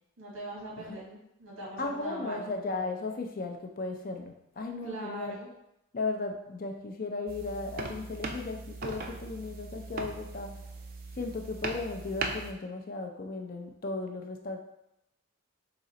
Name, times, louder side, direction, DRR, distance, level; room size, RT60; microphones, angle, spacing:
voice 1, 0.2-2.5 4.8-5.5, right 2 dB, 75° right, -4 dB, 1.5 m, -41 dB
voice 2, 1.8-5.4 5.9-10.5 11.2-14.6, left 3 dB, 40° left, 4 dB, 0.5 m, -36 dB
sound 1, 7.3-12.5, right 3 dB, 40° right, 0.4 m, -39 dB
3.8 x 3.1 x 4.1 m, 0.84 s
head